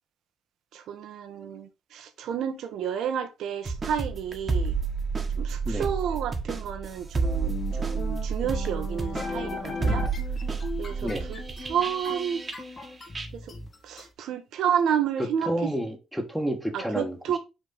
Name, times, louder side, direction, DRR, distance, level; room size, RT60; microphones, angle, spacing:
voice 1, 0.7-4.8 5.3-10.1 10.8-11.4 11.7-12.4 13.3-13.5 13.8-15.5 16.7-17.4, right 8 dB, 80° right, 1.1 m, -30 dB
sound 1, 3.7-12.9 13.1-13.3, right 4 dB, 35° right, 1.4 m, -30 dB
sound 2, 7.2-14.1, left 4 dB, 40° left, 1.9 m, -37 dB
voice 2, 15.2-17.4, equal, ahead, 1.6 m, -30 dB
6.2 x 3.5 x 5.2 m
cardioid pair, 90°, 0 cm